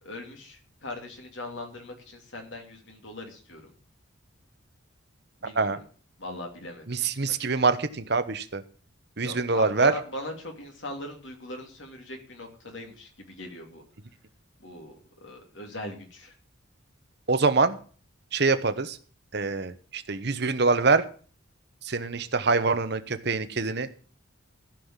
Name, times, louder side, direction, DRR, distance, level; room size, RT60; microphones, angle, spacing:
voice 1, 0.0-3.7 5.4-5.8 6.2-7.0 9.2-13.8 14.6-16.3, left 1 dB, 65° left, 3 dB, 2.9 m, -40 dB
voice 2, 6.9-8.6 9.2-9.9 17.3-17.8 18.3-19.0 19.3-21.0 21.8-23.9, right 4 dB, 55° right, 11 dB, 1.0 m, -24 dB
15.0 x 5.6 x 7.4 m, 0.42 s
head